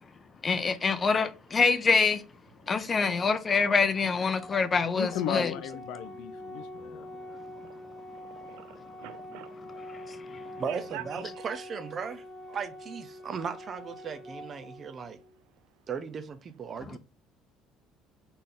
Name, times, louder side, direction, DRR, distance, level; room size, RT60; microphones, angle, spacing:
voice 1, 0.4-2.2 2.7-5.5 10.1-10.4, left 5 dB, 25° left, 0.6 m, -25 dB
Organ, 4.4-15.4, left 1 dB, 5° right, 1.1 m, -45 dB
voice 2, 5.0-7.1, left 10 dB, 75° left, 0.5 m, -35 dB
voice 3, 8.1-9.5 10.7-11.2, right 13 dB, 90° right, 0.3 m, -44 dB
voice 4, 10.6-15.2 15.9-17.0, right 6 dB, 35° right, 0.5 m, -37 dB
4.2 x 3.4 x 3.7 m
cardioid pair, 140°, 0 cm